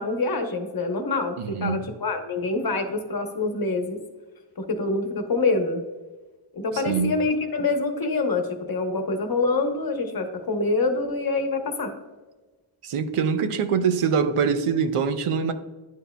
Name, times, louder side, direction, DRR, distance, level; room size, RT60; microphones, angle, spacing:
voice 1, 0.0-4.0 4.6-5.8 6.5-11.9, left 3 dB, 45° left, 6 dB, 1.0 m, -26 dB
voice 2, 1.4-1.9 6.7-7.1 12.8-15.5, right 6 dB, 90° right, 10 dB, 0.7 m, -24 dB
10.0 x 4.5 x 2.3 m, 1.2 s
wide cardioid pair, 115°, 50 cm